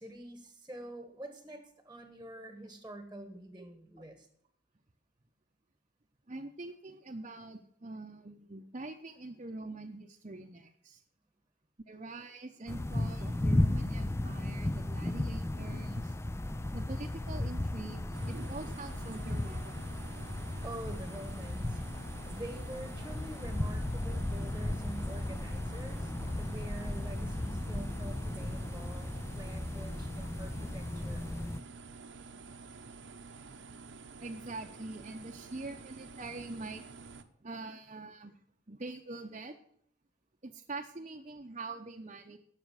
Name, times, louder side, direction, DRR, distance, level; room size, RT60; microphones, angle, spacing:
voice 1, 0.0-4.3 20.6-21.8 22.3-31.2, right 1 dB, 10° right, 7 dB, 1.4 m, -46 dB
voice 2, 6.3-11.0 11.9-16.1 16.7-19.7 26.2-26.9 30.2-30.7 34.2-37.1 37.4-38.3 38.7-39.6 40.4-42.4, right 2 dB, 35° right, 1 dB, 0.8 m, -44 dB
sound 1, 12.7-31.6, left 1 dB, 15° left, 0.5 m, -35 dB
sound 2, 18.1-37.2, right 4 dB, 80° right, 1.0 m, -50 dB
12.0 x 6.5 x 8.2 m, 0.66 s
head